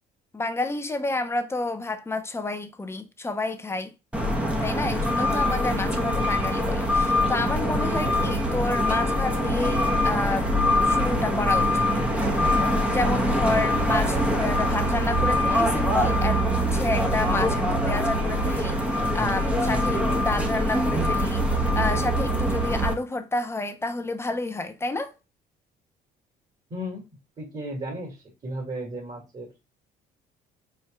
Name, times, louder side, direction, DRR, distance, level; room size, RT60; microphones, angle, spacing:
voice 1, 0.3-3.9 4.6-10.5 10.8-11.9 12.1-12.4 12.8-25.1, left 2 dB, 15° left, 0.7 m, -30 dB
sound 1, 4.1-22.9, equal, 5° right, 1.0 m, -23 dB
voice 2, 26.7-27.1 27.4-29.6, equal, 40° right, 2.2 m, -35 dB
4.5 x 4.4 x 2.3 m
cardioid pair, 110°, 17 cm